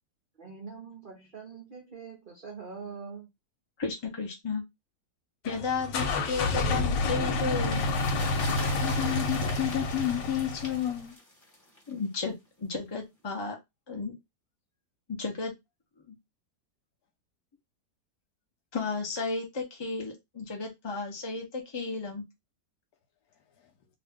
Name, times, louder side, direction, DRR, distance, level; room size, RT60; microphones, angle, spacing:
voice 1, 0.4-3.3, right 5 dB, 60° right, 0.5 m, -43 dB
voice 2, 3.8-4.6 5.4-7.8 11.9-13.6 13.9-14.1 15.1-15.5 16.1-16.2 18.7-22.3, left 4 dB, 40° left, 0.3 m, -33 dB
sound 1, 5.4-11.0, left 3 dB, 90° left, 1.4 m, -29 dB
sound 2, 6.6-12.0 12.3-12.4, left 1 dB, 15° left, 0.9 m, -43 dB
voice 3, 8.4-11.2, left 12 dB, 70° left, 1.0 m, -31 dB
2.8 x 2.5 x 3.4 m
omnidirectional pair, 1.9 m